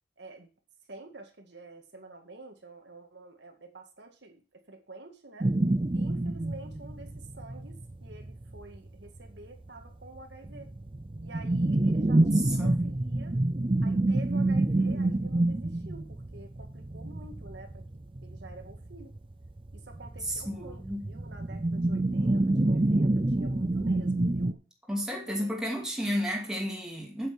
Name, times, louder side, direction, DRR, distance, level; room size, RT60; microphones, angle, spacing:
voice 1, 0.2-0.5 0.9-5.5 5.9-10.7 11.2-13.4 13.8-17.9 18.2-19.1 19.7-24.6 25.1-25.6, right 2 dB, 70° right, 2.1 m, -49 dB
sound 1, 5.4-9.4 9.7-9.8 10.1-24.5, right 2 dB, 25° right, 0.5 m, -27 dB
voice 2, 12.4-12.8 20.3-21.1 22.6-23.1 24.9-27.3, equal, 5° right, 2.5 m, -33 dB
8.3 x 8.2 x 6.1 m
head